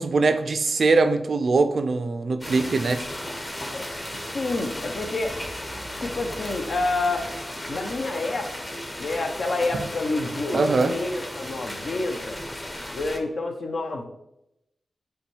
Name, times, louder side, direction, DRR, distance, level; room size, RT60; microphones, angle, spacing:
voice 1, 0.0-3.0 10.5-10.9, right 3 dB, 65° right, 9 dB, 0.3 m, -22 dB
sound 1, 2.4-13.2, left 1 dB, 25° left, 0.8 m, -35 dB
voice 2, 4.3-5.3 6.0-7.3 7.7-10.6 10.9-12.4 12.9-14.0, left 2 dB, 70° left, 4 dB, 0.6 m, -28 dB
5.4 x 2.2 x 3.2 m, 0.85 s
cardioid pair, 45°, 0 cm